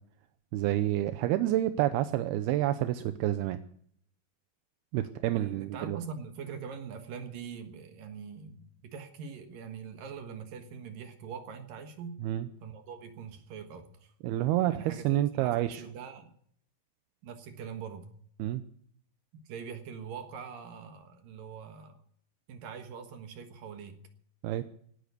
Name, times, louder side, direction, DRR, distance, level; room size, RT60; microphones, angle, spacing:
voice 1, 0.5-3.6 4.9-6.0 12.2-12.5 14.2-15.8 18.4-18.6 24.4-24.6, right 13 dB, 85° right, 10 dB, 2.8 m, -28 dB
voice 2, 5.3-12.2 12.6-14.1 14.7-16.3 17.2-18.1 19.5-22.0 22.5-24.0, right 6 dB, 65° right, 7 dB, 3.0 m, -43 dB
18.0 x 10.5 x 6.8 m, 0.63 s
omnidirectional pair, 4.5 m